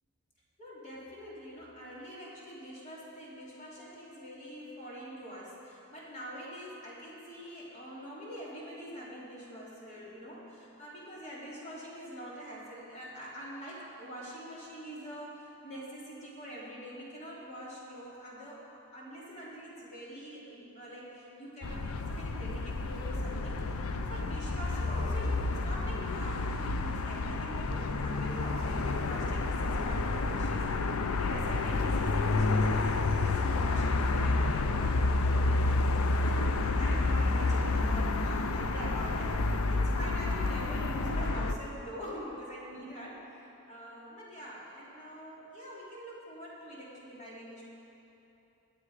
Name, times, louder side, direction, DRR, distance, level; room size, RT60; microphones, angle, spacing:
voice 1, 0.6-35.6 36.1-47.6, equal, 35° left, -6 dB, 3.1 m, -44 dB
sound 1, 21.6-41.5, left 3 dB, 85° left, 0.6 m, -29 dB
22.5 x 7.9 x 4.9 m, 3.0 s
head